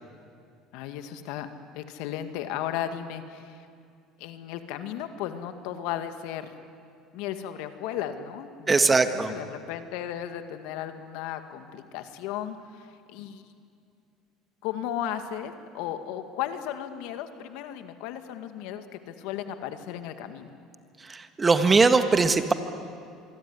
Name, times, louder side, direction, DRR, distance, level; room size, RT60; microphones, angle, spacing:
voice 1, 0.7-1.5 1.7-3.7 4.2-6.5 7.1-13.4 14.6-20.5, left 10 dB, 80° left, 8 dB, 2.0 m, -35 dB
voice 2, 8.7-9.3 21.1-22.5, right 4 dB, 20° right, 9 dB, 1.7 m, -20 dB
25.5 x 23.5 x 9.8 m, 2.4 s
supercardioid pair, 115°, 0 cm